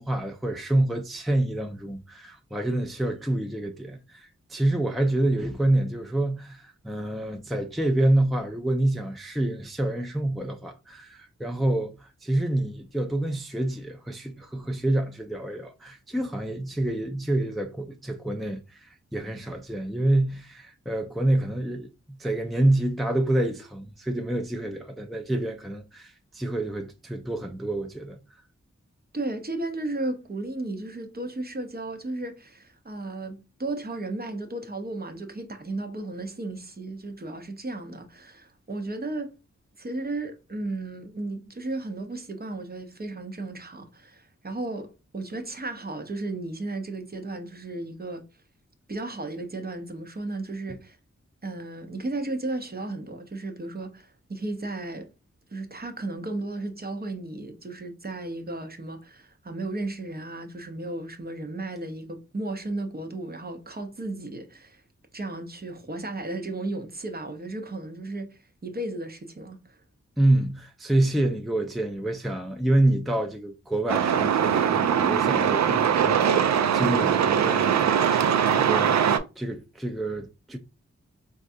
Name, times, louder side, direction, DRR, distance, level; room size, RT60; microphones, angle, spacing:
voice 1, 0.0-28.2 70.2-79.0 79.4-80.6, right 1 dB, ahead, 0.5 m, -27 dB
voice 2, 29.1-39.3 39.8-48.2 48.9-51.0 51.4-55.1 55.5-64.8 65.1-69.8, right 2 dB, 35° right, 0.7 m, -34 dB
Truck, 73.9-79.2, right 8 dB, 70° right, 0.4 m, -22 dB
3.8 x 2.4 x 2.6 m
cardioid pair, 40°, 29 cm